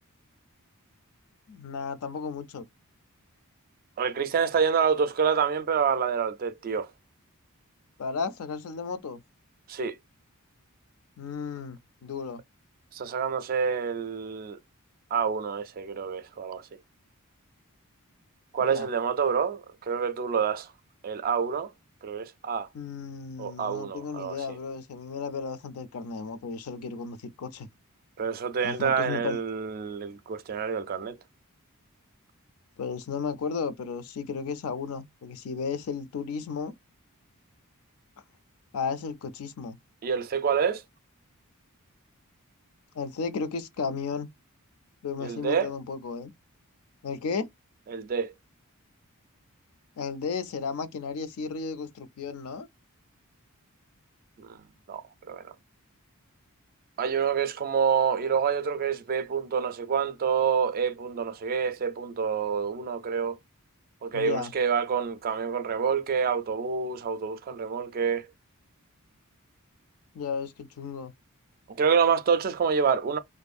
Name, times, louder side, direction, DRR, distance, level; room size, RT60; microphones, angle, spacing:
voice 1, 1.5-2.7 8.0-9.2 11.2-12.4 18.6-18.9 22.7-27.7 28.6-29.4 32.8-36.7 38.7-39.8 42.9-44.3 45.0-46.3 47.0-47.5 50.0-52.7 64.1-64.5 70.1-71.1, left 5 dB, 70° left, 0.4 m, -34 dB
voice 2, 4.0-6.9 9.7-10.0 12.9-14.6 15.1-16.7 18.5-20.7 21.0-21.7 22.0-22.7 23.4-24.4 28.2-31.2 40.0-40.8 45.2-45.7 47.9-48.3 54.4-54.6 54.9-55.5 57.0-63.4 64.0-68.3 71.7-73.2, right 6 dB, 40° right, 0.3 m, -27 dB
2.6 x 2.3 x 2.4 m
head